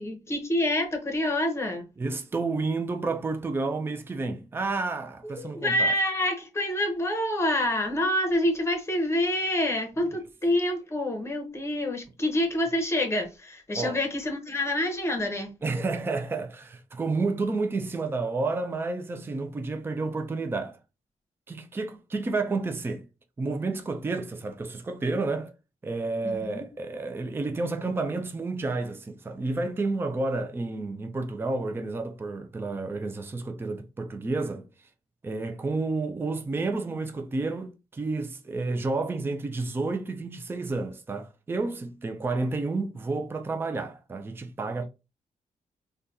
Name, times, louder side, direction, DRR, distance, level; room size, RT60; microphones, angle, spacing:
voice 1, 0.0-1.9 5.2-15.5 26.2-26.7, left 1 dB, 20° left, 0.9 m, -27 dB
voice 2, 2.0-5.9 13.7-14.0 15.6-20.8 21.5-23.1 23.4-25.5 25.8-34.7 35.2-44.8, right 3 dB, 15° right, 0.4 m, -30 dB
3.8 x 2.2 x 2.7 m
cardioid pair, 120°, 14 cm